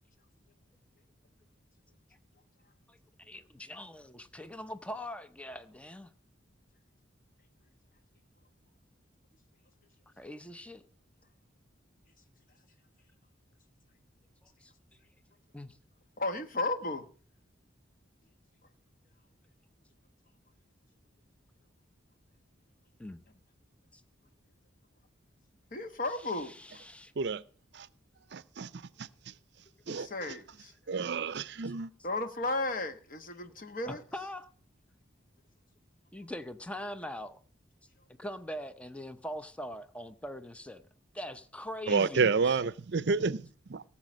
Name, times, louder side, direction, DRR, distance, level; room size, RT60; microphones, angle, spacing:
voice 1, 2.9-6.1 10.1-10.9 14.6-14.7 15.5-15.8 23.0-23.2 23.9-24.0 26.1-27.1 33.8-34.5 36.1-37.4 38.2-40.9 41.1-42.6, left 1 dB, 5° left, 0.6 m, -42 dB
voice 2, 16.2-17.1 25.7-26.5 29.9-30.7 32.0-34.0, left 2 dB, 45° left, 1.2 m, -34 dB
voice 3, 28.3-28.7 29.9-30.1 30.9-31.9 41.9-43.4 43.7-43.8, right 4 dB, 60° right, 0.5 m, -29 dB
17.5 x 7.3 x 6.2 m
head